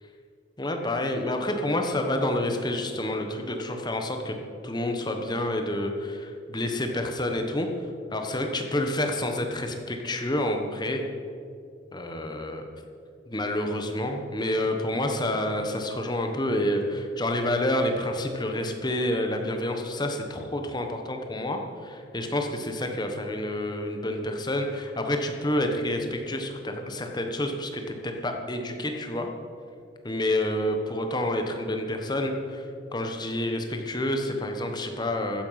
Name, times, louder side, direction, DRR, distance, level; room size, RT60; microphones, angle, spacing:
voice 1, 0.6-4.4 4.6-7.7 8.1-11.0 11.9-12.6 13.3-29.3 30.0-35.4, left 1 dB, 20° left, 4 dB, 1.2 m, -28 dB
15.0 x 9.9 x 5.8 m, 2.4 s
head